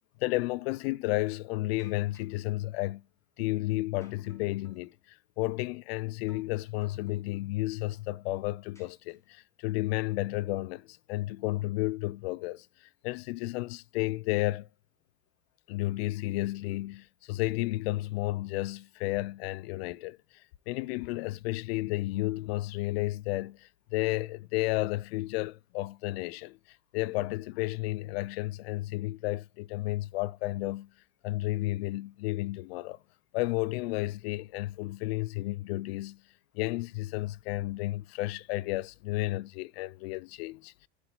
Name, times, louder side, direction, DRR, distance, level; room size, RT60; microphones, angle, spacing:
voice 1, 0.2-3.0 3.4-14.7 15.7-20.2 20.7-26.6 26.9-30.9 31.2-33.0 33.3-36.2 36.5-40.9, left 19 dB, 65° left, 0.5 m, -32 dB
sound 1, 1.8-2.4 4.0-4.9 6.3-6.6 6.8-7.5 8.7-9.5, left 1 dB, 10° left, 3.7 m, -62 dB
16.0 x 7.0 x 2.2 m
supercardioid pair, 115°, 33 cm